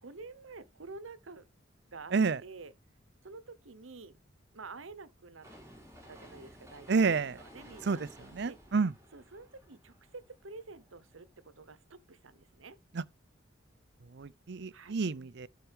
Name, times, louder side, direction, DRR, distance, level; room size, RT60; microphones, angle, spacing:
voice 1, 0.0-1.5 1.9-2.1 2.4-2.7 3.2-4.2 4.5-5.5 6.1-8.0 8.4-8.6 9.1-11.3 11.6-12.8 14.7-15.0, right 3 dB, 90° right, 1.0 m, -49 dB
sound 1, 5.4-11.4 11.8-11.9, equal, 15° right, 5.4 m, -55 dB
voice 2, 6.9-7.4 7.9-8.9 12.9-13.0 14.1-15.5, right 4 dB, 60° right, 0.5 m, -30 dB
12.5 x 4.6 x 3.5 m
head